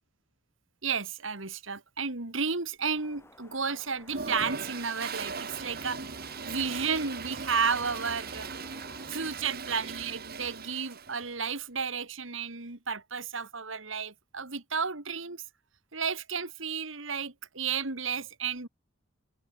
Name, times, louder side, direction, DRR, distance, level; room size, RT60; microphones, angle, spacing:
voice 1, 0.8-6.0 6.5-8.5 9.1-15.4 15.9-18.7, right 5 dB, 75° right, 2.4 m, -32 dB
sound 1, 2.9-9.1, left 2 dB, 15° left, 6.5 m, -55 dB
Toilet flush, 4.1-11.3, right 5 dB, 50° right, 2.0 m, -39 dB
head